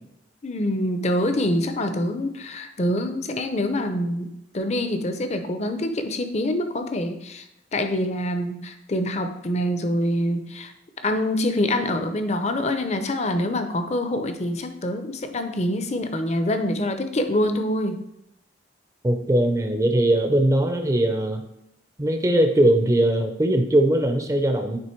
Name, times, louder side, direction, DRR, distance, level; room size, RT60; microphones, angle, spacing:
voice 1, 0.4-4.3 4.5-7.4 7.7-10.7 11.0-18.0, left 1 dB, 35° left, 7 dB, 0.6 m, -25 dB
voice 2, 19.0-21.4 22.0-24.8, right 1 dB, 20° right, 5 dB, 0.6 m, -20 dB
9.7 x 3.4 x 4.5 m, 0.82 s
head